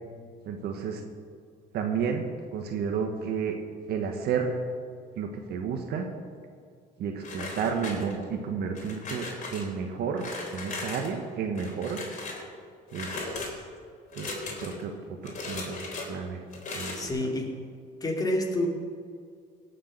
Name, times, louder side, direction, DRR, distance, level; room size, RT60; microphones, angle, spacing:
voice 1, 0.4-1.0 1.7-3.6 3.9-4.6 5.1-6.1 7.0-10.3 10.5-12.0 12.9-13.6 14.1-14.9 15.2-15.8 16.1-16.4 16.7-17.1, right 6 dB, 70° right, 3 dB, 1.3 m, -31 dB
sound 1, 7.2-8.3 8.7-9.6 10.2-11.1 11.5-12.4 12.9-13.5 14.1-14.8 15.2-16.1 16.5-17.1, left 3 dB, 50° left, 3.6 m, -37 dB
voice 2, 16.9-17.5 18.0-18.7, left 1 dB, 20° left, 0 dB, 2.6 m, -28 dB
17.5 x 6.8 x 6.6 m, 2.2 s
cardioid pair, 110°, 17 cm